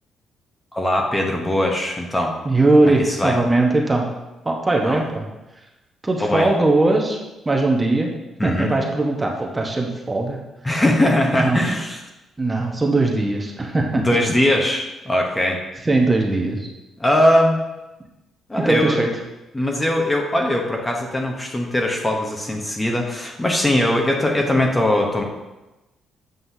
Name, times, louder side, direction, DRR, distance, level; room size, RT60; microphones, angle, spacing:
voice 1, 0.7-2.3 2.8-3.4 4.8-5.0 6.2-6.5 8.4-8.7 10.6-12.0 14.0-15.6 17.0-17.6 18.5-19.0 19.5-25.2, left 1 dB, 15° left, 1 dB, 1.0 m, -20 dB
voice 2, 2.4-4.1 4.4-5.3 6.0-8.1 8.4-10.4 11.3-11.6 12.4-14.0 15.8-16.7 18.6-19.1, right 2 dB, 20° right, 0 dB, 1.0 m, -20 dB
7.9 x 5.4 x 2.8 m, 1.0 s
cardioid pair, 90°, 0 cm